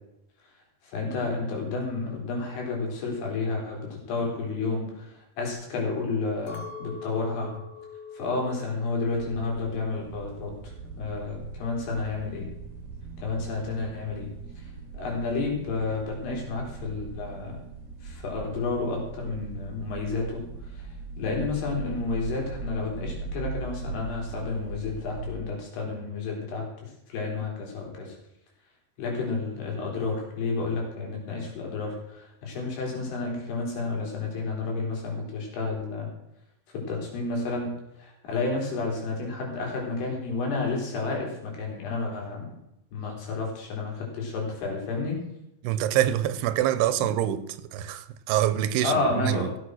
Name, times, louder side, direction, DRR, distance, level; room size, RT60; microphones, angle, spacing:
voice 1, 0.8-7.6 8.1-10.5 11.0-12.5 13.2-14.3 14.6-14.7 14.9-17.6 18.0-20.4 20.7-20.9 21.2-26.7 27.1-28.2 29.0-36.1 36.7-37.7 38.0-42.5 42.9-45.2 48.8-49.5, left 3 dB, 80° left, 5.7 m, -31 dB
Chink clink, 6.5-10.9 11.2-11.8, left 5 dB, 55° left, 2.8 m, -44 dB
sound 1, 9.0-25.3, right 4 dB, 55° right, 4.3 m, -40 dB
voice 2, 45.6-47.4 47.7-49.5, right 12 dB, 85° right, 2.9 m, -25 dB
16.0 x 8.2 x 6.2 m
omnidirectional pair, 4.6 m